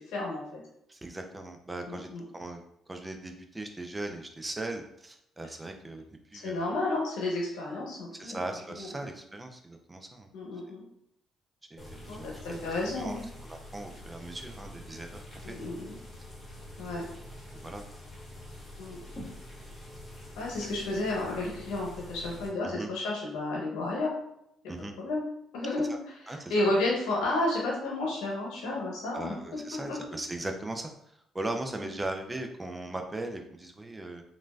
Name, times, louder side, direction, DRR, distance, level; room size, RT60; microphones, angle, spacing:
voice 1, 0.1-0.6 1.8-2.2 6.3-8.4 8.7-8.9 10.3-10.8 12.1-13.3 15.4-15.9 16.8-17.0 18.8-19.0 20.4-24.1 25.0-25.2 25.5-30.0 31.8-31.9, left 2 dB, 85° left, -3 dB, 1.0 m, -32 dB
voice 2, 0.9-2.1 2.3-2.6 2.9-6.7 8.1-10.3 11.7-12.6 12.9-15.6 17.5-17.9 20.6-20.7 22.6-22.9 24.7-24.9 25.9-26.0 26.3-26.5 29.1-30.9 31.3-34.2, right 2 dB, 20° right, 4 dB, 0.4 m, -39 dB
sound 1, 11.8-22.5, left 1 dB, 25° left, 1.1 m, -46 dB
2.9 x 2.6 x 2.3 m, 0.76 s
supercardioid pair, 70°, 0 cm